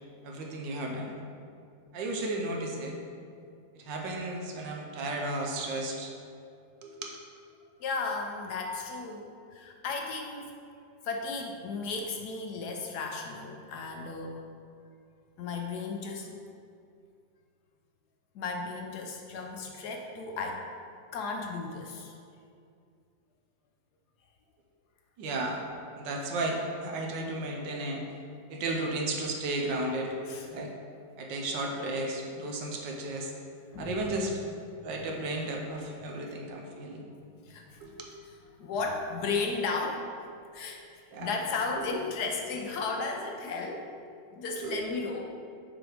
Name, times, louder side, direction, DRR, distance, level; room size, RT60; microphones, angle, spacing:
voice 1, 0.2-1.2 1.9-3.0 3.7-6.1 6.8-7.1 25.2-25.6 25.9-28.0 28.5-30.1 30.5-30.7 31.2-33.3 33.8-34.4 34.8-37.1 37.8-38.1 41.1-41.4 41.7-41.8 44.6-44.9, right 2 dB, 75° right, 1 dB, 1.5 m, -34 dB
voice 2, 7.8-10.6 11.0-14.4 15.4-16.4 18.3-20.7 21.1-22.2 30.3-30.5 33.7-34.0 34.3-34.5 37.4-38.0 38.6-40.1 40.5-40.8 41.2-43.9 44.3-45.3, left 4 dB, 70° left, 2 dB, 1.1 m, -34 dB
6.0 x 4.7 x 4.9 m, 2.4 s
omnidirectional pair, 2.0 m